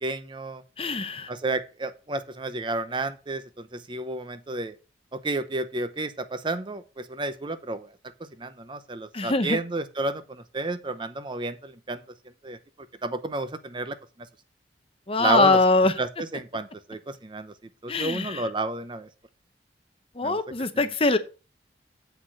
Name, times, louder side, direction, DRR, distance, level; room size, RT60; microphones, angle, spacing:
voice 1, 0.0-0.6 1.3-4.8 5.1-7.9 8.4-12.0 12.4-12.6 13.0-14.0 15.2-15.6 16.0-17.5 17.8-19.1 20.2-20.4 20.7-20.9, right 2 dB, 25° right, 12 dB, 0.7 m, -31 dB
voice 2, 0.8-1.3 9.1-9.6 15.1-15.9 17.9-18.5 20.2-21.2, left 3 dB, 30° left, 11 dB, 0.8 m, -22 dB
8.0 x 6.2 x 6.3 m, 0.33 s
head